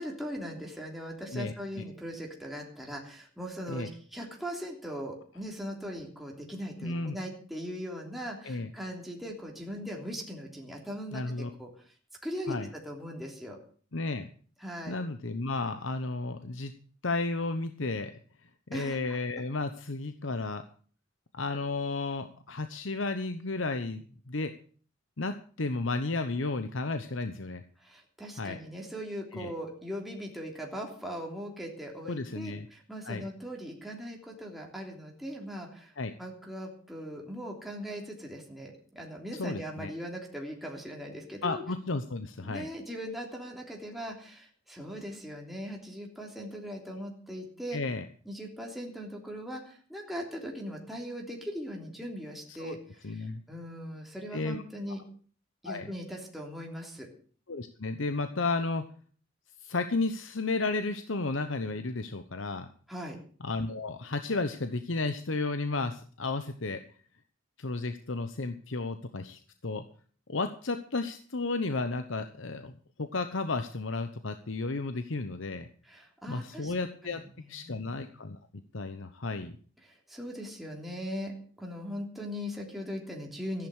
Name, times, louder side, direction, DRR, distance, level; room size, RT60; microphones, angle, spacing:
voice 1, 0.0-11.7 12.2-13.6 14.6-15.0 18.7-19.0 27.8-35.9 36.2-41.6 42.4-47.8 48.2-52.8 53.0-55.0 55.6-57.1 62.9-63.2 75.8-76.7 77.0-77.8 79.8-83.7, equal, ahead, -1 dB, 3.3 m, -40 dB
voice 2, 1.3-1.8 3.7-3.9 6.8-7.1 8.4-8.7 11.1-11.5 12.5-12.7 13.9-14.3 14.8-16.7 17.0-18.1 18.7-20.6 21.3-24.5 25.2-27.6 28.4-28.6 29.3-29.5 32.0-32.7 33.1-33.2 36.0-36.1 39.4-39.9 41.4-42.7 47.7-48.1 52.6-52.8 53.0-53.4 54.3-54.6 55.6-55.9 57.5-58.8 59.6-62.7 63.4-66.8 67.6-69.8 70.3-75.7 76.3-77.2 77.5-78.4 78.7-79.6, left 3 dB, 75° left, 9 dB, 1.0 m, -33 dB
14.0 x 11.0 x 6.5 m, 0.44 s
head